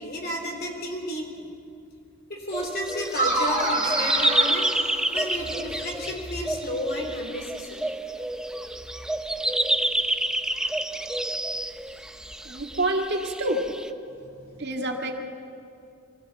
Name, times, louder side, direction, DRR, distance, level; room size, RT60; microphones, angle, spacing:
voice 1, 0.0-1.5 2.3-4.7 5.1-7.9 8.5-8.8 14.4-14.6, left 1 dB, 50° left, 2 dB, 3.5 m, -32 dB
sound 1, 2.5-13.9, right 1 dB, 5° right, 0.6 m, -29 dB
sound 2, 3.1-5.6, right 2 dB, 25° right, 5.5 m, -27 dB
voice 2, 12.4-13.6 14.6-15.1, right 1 dB, 50° right, 2 dB, 2.0 m, -27 dB
23.5 x 15.5 x 8.3 m, 2.6 s
head